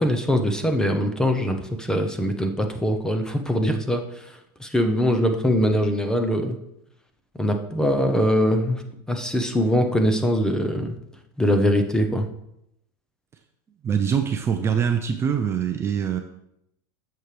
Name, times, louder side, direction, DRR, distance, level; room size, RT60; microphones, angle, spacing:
voice 1, 0.0-6.6 7.3-8.8 9.1-11.0 11.4-12.3, equal, 5° left, 5 dB, 0.8 m, -22 dB
voice 2, 13.8-16.2, right 7 dB, 20° right, 6 dB, 0.5 m, -23 dB
10.5 x 6.8 x 3.3 m, 0.80 s
supercardioid pair, 145°, 12 cm